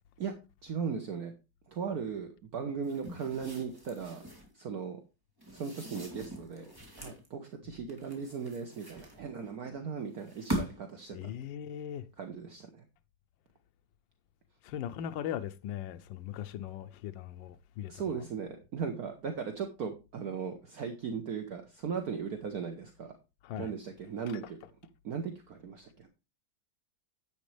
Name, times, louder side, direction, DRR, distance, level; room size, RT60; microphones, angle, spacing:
voice 1, 0.6-1.3 1.7-4.2 4.5-5.0 5.5-6.7 7.0-11.3 12.2-12.9 17.9-23.1 23.6-24.6 25.0-26.1, right 6 dB, 55° right, 1.5 m, -37 dB
sound 1, 2.8-4.5 5.4-7.3 7.9-9.5 10.2-11.0, equal, 10° right, 3.0 m, -41 dB
voice 2, 11.1-12.1 14.6-18.2 23.4-23.7 24.3-24.4, left 10 dB, 80° left, 1.4 m, -39 dB
10.5 x 8.3 x 3.3 m
omnidirectional pair, 2.0 m